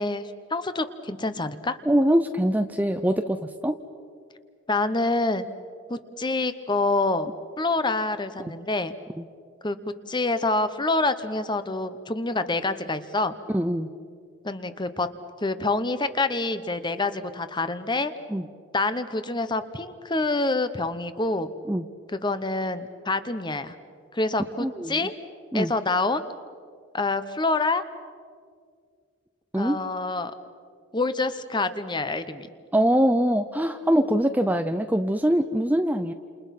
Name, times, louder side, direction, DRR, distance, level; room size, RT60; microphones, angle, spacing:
voice 1, 0.0-1.8 4.7-5.5 5.9-7.3 7.6-8.9 9.6-9.8 10.1-13.3 14.4-15.1 15.4-18.1 18.7-21.5 22.1-23.7 24.1-25.1 25.5-26.2 26.9-27.8 29.6-30.3 30.9-32.5, left 2 dB, 20° left, 11 dB, 1.0 m, -26 dB
voice 2, 1.9-3.8 13.5-13.9 18.3-18.5 21.7-21.9 24.6-25.0 25.5-25.7 29.5-29.8 32.7-36.1, equal, 10° right, 8 dB, 0.6 m, -23 dB
30.0 x 28.0 x 6.0 m, 2.2 s
head